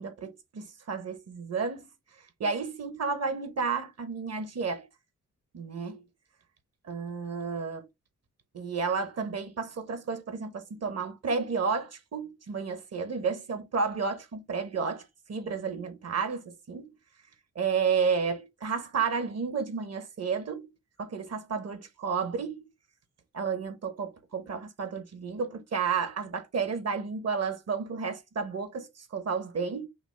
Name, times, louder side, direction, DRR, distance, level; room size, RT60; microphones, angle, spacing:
voice 1, 0.0-1.9 2.4-4.9 5.5-6.0 6.9-7.8 8.5-15.0 15.3-16.9 17.5-20.7 21.0-22.6 23.3-29.9, right 5 dB, 55° right, 0.9 m, -31 dB
5.6 x 2.1 x 3.3 m
wide cardioid pair, 130°, 31 cm